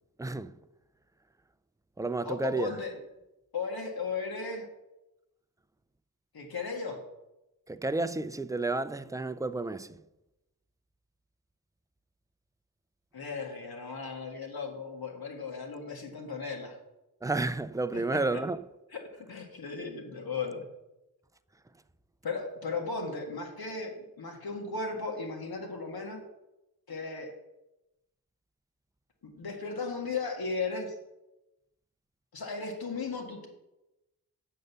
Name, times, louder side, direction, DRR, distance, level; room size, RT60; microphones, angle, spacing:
voice 1, 0.2-0.6 2.0-2.8 7.7-10.0 17.2-18.6, right 2 dB, 10° right, 0.4 m, -31 dB
voice 2, 2.2-3.0 3.5-4.7 6.3-7.0 13.1-16.8 17.9-18.2 18.9-20.6 22.2-26.2 26.9-27.3 29.2-31.0 32.3-33.5, left 4 dB, 75° left, 2.0 m, -36 dB
7.9 x 6.7 x 6.8 m
wide cardioid pair, 95°, 37 cm